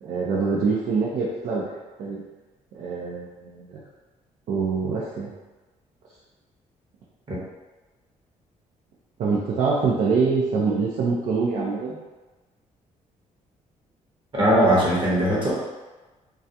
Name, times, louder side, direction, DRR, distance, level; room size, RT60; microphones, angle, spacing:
voice 1, 0.0-1.7 2.0-2.2 2.7-3.8 4.5-5.3 9.2-12.0, right 4 dB, 75° right, -6 dB, 0.5 m, -24 dB
voice 2, 14.3-15.5, right 1 dB, 35° right, -7 dB, 0.8 m, -19 dB
2.3 x 2.2 x 2.7 m, 1.2 s
cardioid pair, 95°, 14 cm